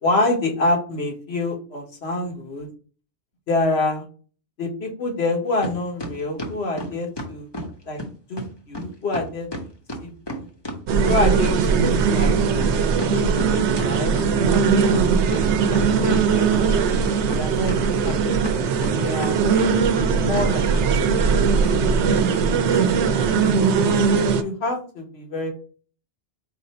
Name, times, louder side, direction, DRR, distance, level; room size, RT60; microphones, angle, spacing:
voice 1, 0.0-2.7 3.5-4.0 4.6-7.5 7.9-8.0 8.3-9.5 10.0-10.5 11.1-12.3 13.0-14.2 14.5-16.8 17.3-18.7 18.9-19.4 20.1-20.7 21.5-21.6 22.3-23.4 24.3-25.5, left 2 dB, 70° left, 1 dB, 1.4 m, -27 dB
sound 1, 5.6-5.7 6.0-7.7 8.0-8.1 8.4-8.5 8.7-8.9 9.1-11.6 11.8-14.6 14.9-15.0 15.3-16.2 16.5-17.4 17.7-19.3 19.6-20.1 20.3-20.5 20.7-20.8 21.2-21.3 21.7-21.8, equal, 25° left, 0.9 m, -31 dB
sound 2, 10.9-24.4, right 5 dB, 85° right, 0.9 m, -20 dB
4.9 x 2.5 x 4.2 m, 0.39 s
omnidirectional pair, 1.1 m